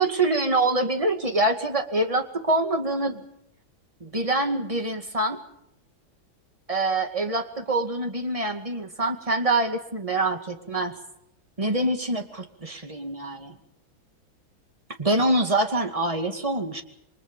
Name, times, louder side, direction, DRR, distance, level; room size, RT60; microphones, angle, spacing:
voice 1, 0.0-3.3 4.0-5.4 6.7-11.0 11.6-13.6 15.0-16.8, right 2 dB, 15° right, 5 dB, 2.1 m, -25 dB
28.0 x 23.0 x 5.4 m, 0.75 s
omnidirectional pair, 2.2 m